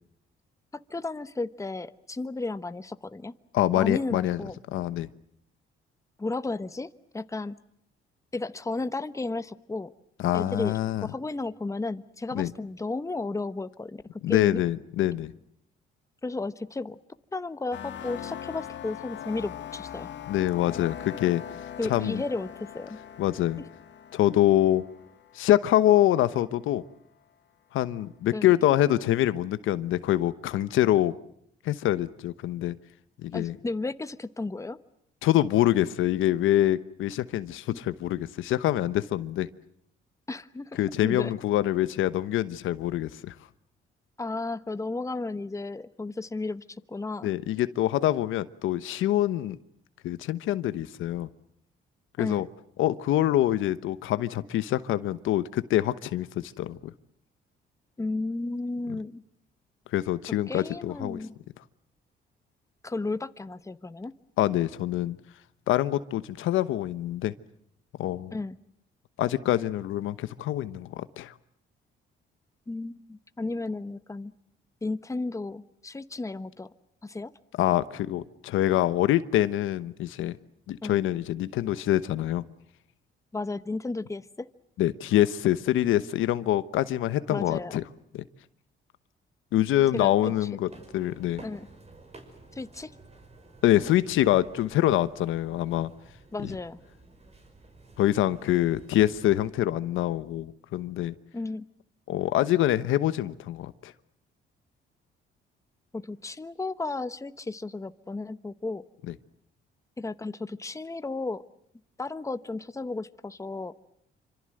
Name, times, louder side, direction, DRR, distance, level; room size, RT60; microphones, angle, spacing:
voice 1, 0.9-3.3 3.7-4.6 6.2-7.5 8.3-9.9 10.3-10.7 11.0-14.6 16.2-17.0 17.3-20.1 21.8-23.0 28.3-28.5 33.3-34.8 37.7-37.8 40.3-41.3 44.2-47.3 52.2-52.5 58.0-59.2 60.5-61.3 62.8-64.1 68.3-68.6 72.7-74.3 74.8-76.7 77.0-77.3 80.8-81.0 83.3-84.5 87.3-87.8 89.9-90.5 91.4-91.7 92.5-92.9 96.3-96.8 101.3-101.6 105.9-108.8 110.0-111.4 112.0-113.7, left 3 dB, 15° left, 12 dB, 1.1 m, -33 dB
voice 2, 3.5-4.4 4.7-5.1 10.2-11.1 12.3-12.5 14.2-15.3 20.3-21.4 21.9-22.2 23.2-23.6 24.1-24.8 25.3-26.8 27.7-31.1 31.6-32.8 33.2-33.6 35.2-39.5 40.8-43.3 47.2-49.6 50.0-51.3 52.2-52.5 52.8-56.9 59.9-61.2 64.4-65.2 65.7-67.3 68.0-68.4 69.2-71.3 77.6-80.4 80.7-82.4 84.8-87.8 88.1-88.2 89.5-91.4 93.6-95.9 96.4-96.5 98.0-101.1 102.1-103.9, left 13 dB, 85° left, 14 dB, 1.1 m, -25 dB
sound 1, 17.7-26.3, left 9 dB, 65° left, 1.9 m, -41 dB
sound 2, 90.7-99.5, right 2 dB, 30° right, 5.7 m, -52 dB
27.0 x 26.0 x 7.8 m, 0.71 s
cardioid pair, 90°, 20 cm